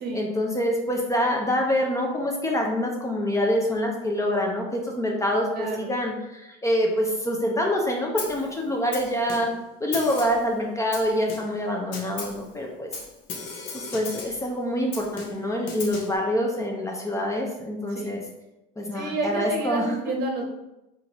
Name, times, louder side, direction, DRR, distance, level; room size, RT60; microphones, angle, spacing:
voice 1, 0.1-9.5 9.8-12.9 13.7-18.2 18.8-19.9, equal, 15° left, 0 dB, 0.5 m, -26 dB
voice 2, 5.5-5.9 17.9-18.2 18.9-20.4, right 2 dB, 50° right, 2 dB, 0.8 m, -30 dB
Snare drum, 8.2-8.5 8.9-9.6 9.9-10.5 10.9-11.6 11.9-12.4 12.9-14.4 14.9-16.2, left 4 dB, 65° left, 0.8 m, -37 dB
3.7 x 2.5 x 2.9 m, 0.94 s
supercardioid pair, 105°, 21 cm